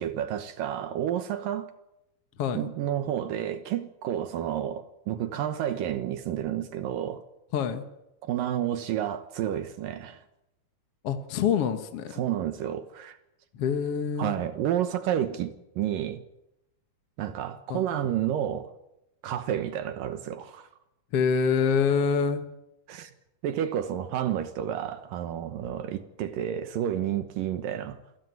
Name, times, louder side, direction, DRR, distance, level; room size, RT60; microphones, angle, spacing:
voice 1, 0.0-1.7 2.6-7.2 8.2-10.2 12.1-13.2 14.2-16.2 17.2-18.7 19.2-20.7 22.9-23.1 23.4-28.0, right 10 dB, 75° right, 2.8 m, -30 dB
voice 2, 7.5-7.8 11.0-12.1 13.5-14.4 17.7-17.8 21.1-22.4, left 6 dB, 50° left, 2.0 m, -26 dB
27.5 x 16.0 x 9.4 m
omnidirectional pair, 4.0 m